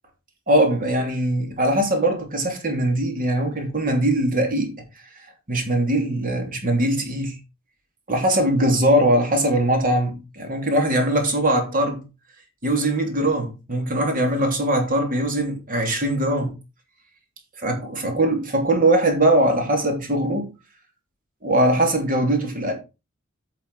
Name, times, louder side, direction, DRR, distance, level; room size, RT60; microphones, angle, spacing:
voice 1, 0.5-4.7 5.5-7.4 8.1-12.0 12.6-16.5 17.6-20.5 21.4-22.7, right 1 dB, 40° right, 2.9 m, -21 dB
9.5 x 5.7 x 4.8 m
head